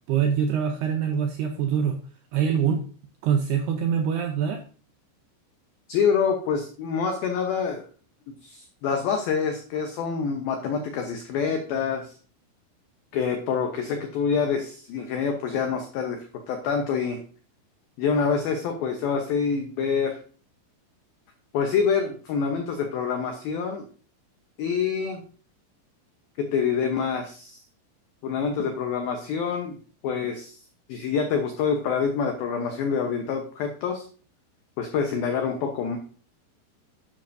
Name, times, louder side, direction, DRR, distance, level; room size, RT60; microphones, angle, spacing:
voice 1, 0.1-1.9 2.3-2.8 3.2-4.6, right 7 dB, 80° right, 4 dB, 2.3 m, -24 dB
voice 2, 5.9-7.9 8.4-12.1 13.1-17.2 18.0-20.2 21.5-23.8 24.6-25.2 26.4-27.6 28.2-29.8 30.0-30.6 30.9-34.1 34.8-36.0, left 6 dB, 85° left, 4 dB, 2.1 m, -26 dB
10.0 x 9.8 x 2.6 m, 0.41 s
omnidirectional pair, 5.6 m